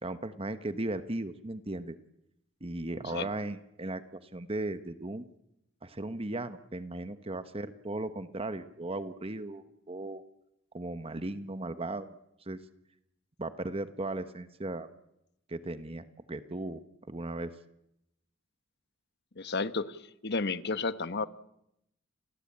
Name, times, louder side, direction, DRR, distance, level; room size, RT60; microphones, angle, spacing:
voice 1, 0.0-2.0 2.6-5.3 5.8-10.2 10.7-12.1 12.5-12.6 13.4-14.9 15.5-16.8 17.1-17.5, right 2 dB, 30° right, 11 dB, 1.1 m, -37 dB
voice 2, 19.4-21.3, left 4 dB, 55° left, 12 dB, 1.2 m, -32 dB
29.5 x 21.0 x 8.6 m, 0.82 s
head